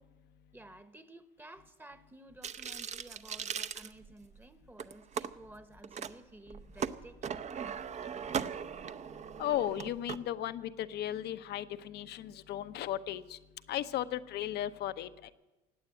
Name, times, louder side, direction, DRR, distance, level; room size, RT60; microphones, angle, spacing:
voice 1, 0.5-7.3, right 1 dB, 10° right, 10 dB, 1.0 m, -53 dB
sound 1, 2.4-4.4 4.8-5.3 5.8-6.1 6.5-10.2, right 7 dB, 40° right, 0.6 m, -38 dB
voice 2, 9.4-13.4 13.7-15.3, left 12 dB, 65° left, 13 dB, 0.8 m, -35 dB
17.0 x 8.8 x 8.7 m, 1.1 s
cardioid pair, 100°, 18 cm